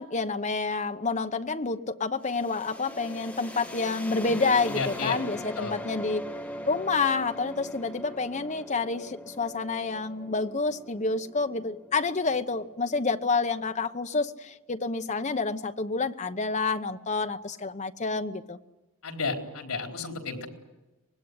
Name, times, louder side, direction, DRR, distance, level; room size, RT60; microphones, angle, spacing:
voice 1, 0.0-6.2 6.7-18.6, left 4 dB, 30° left, 0.9 m, -28 dB
sound 1, 2.2-13.9, left 1 dB, 5° left, 0.9 m, -41 dB
voice 2, 4.7-5.2 5.6-5.8 19.0-20.5, left 4 dB, 75° left, 4.2 m, -32 dB
24.5 x 20.0 x 9.8 m
head